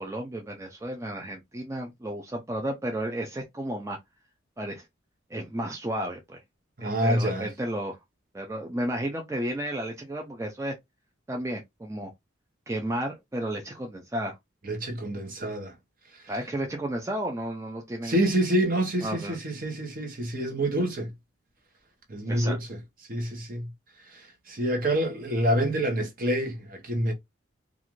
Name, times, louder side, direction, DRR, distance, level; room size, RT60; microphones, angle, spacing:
voice 1, 0.0-4.0 4.6-4.9 5.3-6.4 6.8-8.0 8.3-10.7 11.3-12.1 12.7-14.4 16.3-18.2 19.0-19.4 22.3-22.6, right 1 dB, 15° right, 0.4 m, -32 dB
voice 2, 6.8-7.5 14.6-15.7 16.1-16.2 18.0-21.1 22.1-22.8 23.1-23.7 24.1-27.1, right 1 dB, 45° right, 0.8 m, -27 dB
2.5 x 2.4 x 2.9 m
head